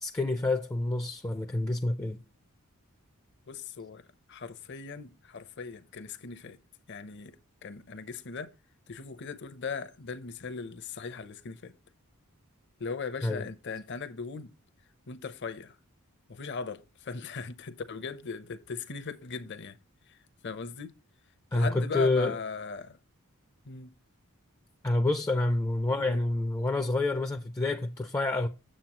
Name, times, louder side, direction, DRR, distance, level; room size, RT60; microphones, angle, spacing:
voice 1, 0.0-2.2 13.2-13.5 21.5-22.3 24.8-28.5, left 2 dB, 15° left, 0.4 m, -28 dB
voice 2, 3.5-4.0 4.3-6.6 6.9-7.4 7.6-8.5 8.9-11.7 12.8-14.5 15.1-15.8 16.3-19.8 20.1-20.2 20.4-20.9 21.5-23.0 23.7-23.9 25.9-26.2, left 5 dB, 50° left, 0.6 m, -39 dB
7.6 x 7.2 x 2.9 m
head